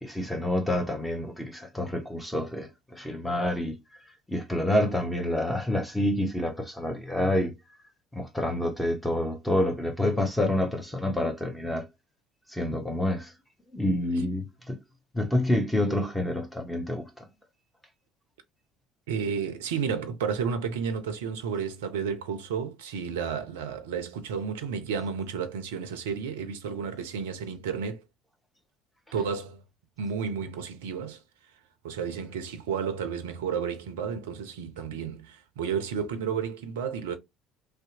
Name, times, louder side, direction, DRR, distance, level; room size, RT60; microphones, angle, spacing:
voice 1, 0.0-3.8 4.3-7.5 8.1-11.8 12.5-13.3 13.7-14.8 15.1-17.2, left 1 dB, 5° left, 0.8 m, -28 dB
voice 2, 19.1-28.0 29.1-29.6 30.0-31.2 31.8-37.2, right 6 dB, 70° right, 0.4 m, -32 dB
2.6 x 2.0 x 2.5 m
figure-of-eight pair, 55°, 0 cm